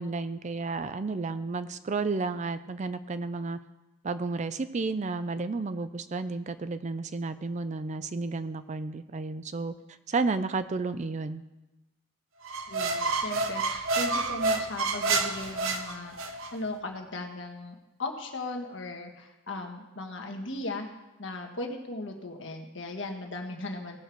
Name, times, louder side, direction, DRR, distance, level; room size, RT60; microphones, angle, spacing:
voice 1, 0.0-3.6 4.0-9.7 10.1-11.4, right 3 dB, 35° right, 12 dB, 0.4 m, -32 dB
sound 1, 12.4-16.5, right 3 dB, 80° right, 0.9 m, -29 dB
voice 2, 12.7-20.9 21.2-24.0, left 2 dB, 65° left, 3 dB, 1.5 m, -37 dB
17.5 x 6.7 x 4.6 m, 1.0 s
head